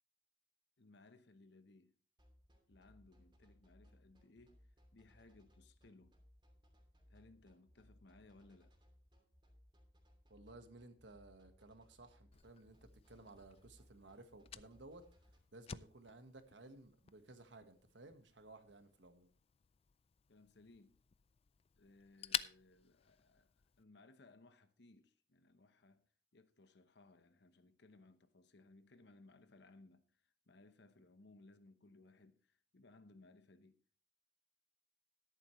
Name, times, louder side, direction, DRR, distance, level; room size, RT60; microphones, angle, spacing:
voice 1, 0.8-1.9 2.7-6.2 7.1-8.7 20.3-21.0 21.8-26.1 26.3-33.8, left 2 dB, 65° left, 0.9 m, -64 dB
sound 1, 2.2-15.4, equal, 25° right, 2.9 m, -67 dB
voice 2, 10.3-15.1 15.5-19.3, right 2 dB, 75° right, 1.4 m, -58 dB
Fire, 12.3-23.8, left 9 dB, 35° left, 0.4 m, -50 dB
13.0 x 11.0 x 3.1 m
head